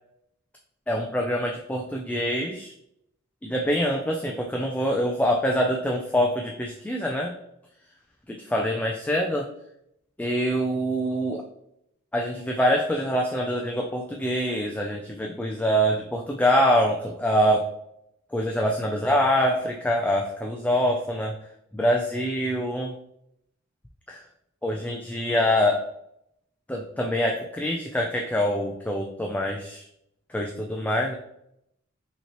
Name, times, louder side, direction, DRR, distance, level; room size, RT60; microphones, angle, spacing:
voice 1, 0.9-2.7 3.4-7.3 8.5-9.5 10.2-11.4 12.1-17.7 18.3-21.3 21.7-22.9 24.1-24.2 24.6-25.9 26.7-29.8 30.3-31.1, equal, 5° left, 0 dB, 0.3 m, -25 dB
5.6 x 3.0 x 3.0 m, 0.77 s
head